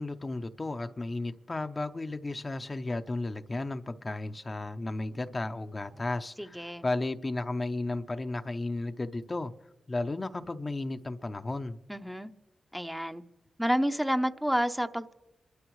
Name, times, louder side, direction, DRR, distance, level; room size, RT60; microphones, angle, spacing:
voice 1, 0.0-9.5 9.9-11.8, left 2 dB, 35° left, 0.7 m, -34 dB
voice 2, 6.4-6.8 11.9-12.3 12.7-13.2 13.6-15.1, equal, 5° right, 0.7 m, -29 dB
27.0 x 13.0 x 3.1 m
cardioid pair, 50°, 0 cm